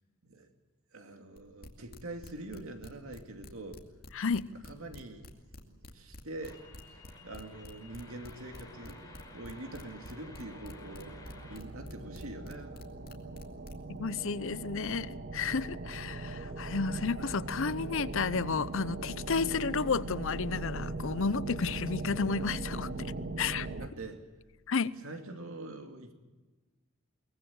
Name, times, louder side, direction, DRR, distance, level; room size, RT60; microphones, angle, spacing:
voice 1, 0.9-3.8 4.7-5.3 5.6-6.6 7.2-9.0 9.3-11.2 11.5-13.0 16.3-16.4 23.8-24.2 25.0-26.1, right 2 dB, 75° right, 2.5 m, -44 dB
sound 1, 1.4-14.0, left 1 dB, 45° left, 2.4 m, -49 dB
voice 2, 4.1-4.5 13.9-23.7 24.7-25.0, left 5 dB, 65° left, 0.7 m, -32 dB
sound 2, 6.4-11.6, left 3 dB, 20° left, 3.8 m, -54 dB
sound 3, 7.1-23.9, right 2 dB, 50° right, 1.3 m, -41 dB
23.0 x 19.0 x 7.3 m
head